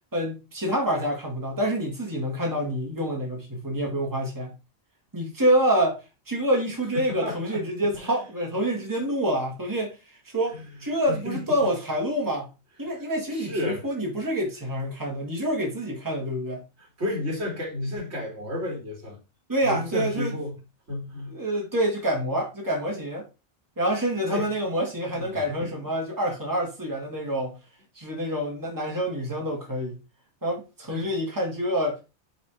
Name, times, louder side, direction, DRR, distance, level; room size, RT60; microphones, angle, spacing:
voice 1, 0.1-4.5 5.1-9.9 10.3-12.5 12.8-16.6 19.5-20.3 21.3-23.3 23.8-27.6 28.0-30.0 30.4-32.0, right 1 dB, 15° right, 1.9 m, -27 dB
voice 2, 6.9-7.6 8.0-8.2 10.5-10.6 11.1-11.4 13.3-13.8 16.8-19.2 19.6-20.6 20.9-21.4 24.3-24.5 25.2-25.7 30.9-31.1, left 1 dB, 70° right, 2.4 m, -32 dB
5.7 x 4.1 x 4.9 m
omnidirectional pair, 1.2 m